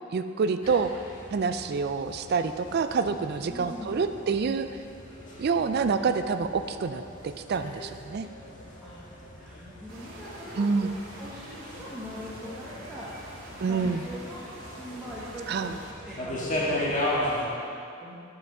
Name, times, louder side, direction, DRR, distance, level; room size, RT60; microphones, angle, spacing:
voice 1, 0.1-0.9 1.3-4.7 5.4-7.0 7.5-8.3 10.6-10.9 13.6-14.0 15.5-15.7, right 5 dB, 50° right, 9 dB, 0.4 m, -27 dB
sound 1, 0.6-17.5, left 1 dB, 40° left, 1.6 m, -37 dB
voice 2, 3.5-3.9 8.8-10.9 11.2-15.8 16.0-18.1, equal, 5° right, -10 dB, 1.3 m, -42 dB
sound 2, 9.9-15.9, right 1 dB, 80° right, 1.7 m, -46 dB
9.7 x 5.9 x 5.4 m, 2.5 s
head